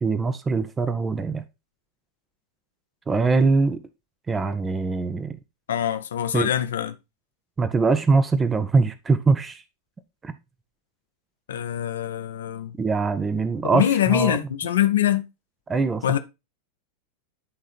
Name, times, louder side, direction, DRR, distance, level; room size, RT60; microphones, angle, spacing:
voice 1, 0.0-1.4 3.1-3.8 4.3-5.4 6.3-6.5 7.6-9.6 10.2-10.3 12.8-14.4 15.7-16.2, right 4 dB, 15° right, 0.7 m, -22 dB
voice 2, 5.7-6.9 11.5-12.7 13.7-15.2 16.0-16.2, left 11 dB, 65° left, 0.8 m, -23 dB
11.0 x 3.8 x 4.2 m
figure-of-eight pair, 90°, 0 cm